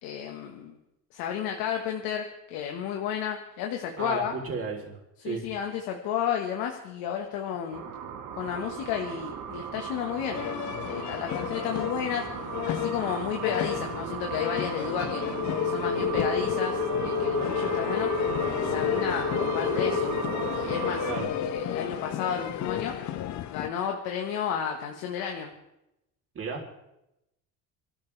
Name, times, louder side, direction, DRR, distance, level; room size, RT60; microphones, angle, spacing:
voice 1, 0.0-0.7 1.1-4.3 5.2-7.8 8.3-10.4 10.8-12.3 12.6-15.2 15.6-18.1 18.6-20.1 20.5-23.0 23.5-25.5, left 8 dB, 90° left, 2 dB, 1.6 m, -32 dB
voice 2, 4.0-5.0 5.2-5.5 21.1-21.3 26.4-26.6, right 4 dB, 40° right, 0 dB, 3.7 m, -33 dB
sound 1, 7.7-21.2, right 7 dB, 60° right, 1.6 m, -36 dB
sound 2, 10.3-23.7, left 11 dB, 55° left, 0.8 m, -34 dB
sound 3, 15.2-21.6, left 6 dB, 35° left, 1.2 m, -30 dB
26.5 x 13.0 x 3.4 m, 0.87 s
cardioid pair, 125°, 35 cm